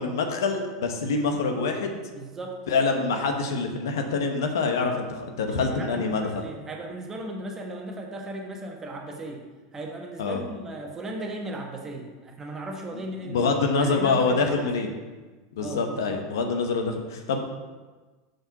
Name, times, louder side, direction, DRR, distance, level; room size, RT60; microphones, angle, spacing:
voice 1, 0.0-2.0 2.7-6.5 10.2-10.4 13.2-14.9 15.6-17.4, left 4 dB, 80° left, 4 dB, 1.0 m, -25 dB
voice 2, 2.1-2.6 5.5-9.4 9.7-14.9 15.6-16.2, right 1 dB, 25° right, 1 dB, 1.3 m, -37 dB
6.4 x 4.5 x 5.9 m, 1.3 s
hypercardioid pair, 100°, 2 cm